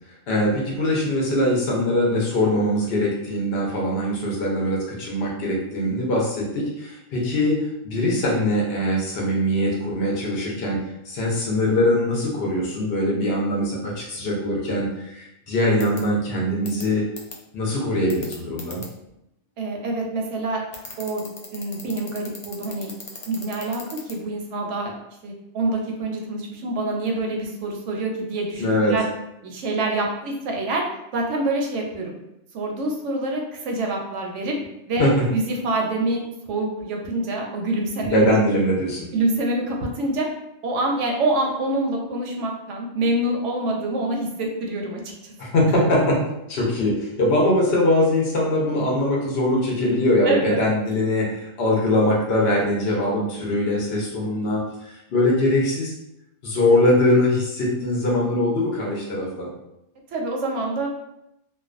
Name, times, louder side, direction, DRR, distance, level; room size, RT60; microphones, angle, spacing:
voice 1, 0.3-10.8 11.1-17.0 17.5-18.8 28.6-28.9 35.0-35.2 38.0-39.1 45.4-46.2 46.5-55.9 56.4-59.5, left 1 dB, 60° left, -3 dB, 0.8 m, -22 dB
sound 1, 15.8-16.0 16.7-16.8 17.2-17.3 18.1-18.9 20.7-24.1, left 4 dB, 80° left, 0.3 m, -37 dB
voice 2, 19.6-20.6 21.0-21.3 21.5-22.9 23.3-25.0 25.2-29.1 29.4-30.8 31.1-32.1 32.5-34.6 34.9-38.3 39.1-40.3 40.6-45.3 50.2-50.7 60.1-60.9, right 2 dB, 85° right, 1 dB, 0.9 m, -26 dB
2.4 x 2.1 x 2.4 m, 0.84 s
omnidirectional pair, 1.2 m